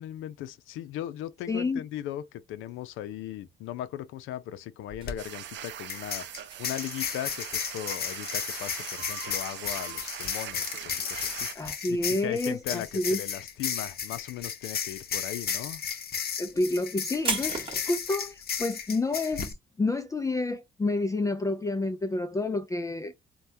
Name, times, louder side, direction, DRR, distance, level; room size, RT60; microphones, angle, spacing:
voice 1, 0.0-15.8, left 12 dB, 90° left, 0.5 m, -38 dB
voice 2, 1.5-1.8 11.5-13.2 16.4-23.2, left 2 dB, 15° left, 0.4 m, -29 dB
sound 1, 4.8-12.8 13.1-13.7 14.0-17.9, right 3 dB, 25° right, 1.1 m, -39 dB
sound 2, 4.9-5.1 5.9-19.5, left 7 dB, 50° left, 0.7 m, -34 dB
sound 3, 5.2-11.5, right 11 dB, 65° right, 0.5 m, -41 dB
3.3 x 2.2 x 2.6 m
cardioid pair, 90°, 20 cm